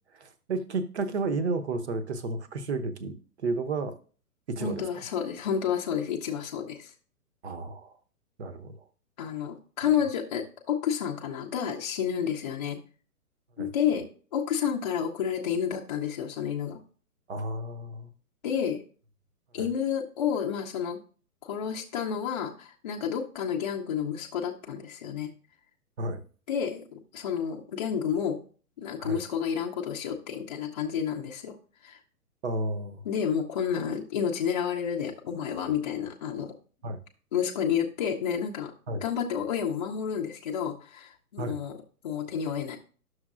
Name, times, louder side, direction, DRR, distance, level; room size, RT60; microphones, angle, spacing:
voice 1, 0.2-4.0 4.5-4.8 7.4-7.9 8.4-8.7 13.6-13.7 17.3-18.1 19.6-19.7 26.0-26.2 29.0-29.2 32.4-33.0 36.8-37.0 38.9-39.0 41.4-41.6, right 3 dB, 45° right, 10 dB, 0.9 m, -32 dB
voice 2, 4.6-6.9 9.2-12.8 13.6-14.0 14.3-16.8 18.4-18.8 19.5-21.0 21.4-25.3 26.5-28.4 28.8-31.6 31.8-32.0 33.0-36.5 37.3-41.7 42.0-42.8, left 8 dB, 25° left, -1 dB, 0.6 m, -30 dB
11.0 x 6.3 x 2.5 m, 0.41 s
figure-of-eight pair, 125°, 46 cm